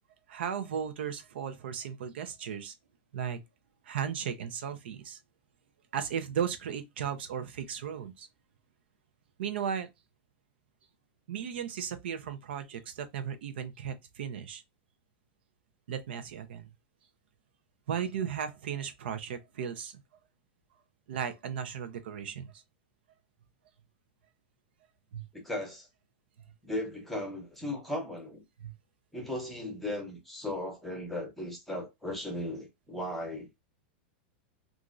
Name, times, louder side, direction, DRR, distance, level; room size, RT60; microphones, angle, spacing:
voice 1, 0.3-2.7 3.1-3.4 3.9-5.2 5.9-8.3 9.4-9.9 11.3-14.6 15.9-16.7 17.9-20.0 21.1-22.6 25.1-25.2 28.6-28.7, right 8 dB, 80° right, 0.6 m, -35 dB
voice 2, 25.4-25.9 26.6-28.4 29.1-33.5, left 1 dB, 5° left, 0.7 m, -36 dB
3.0 x 2.5 x 2.5 m
supercardioid pair, 170°, 6 cm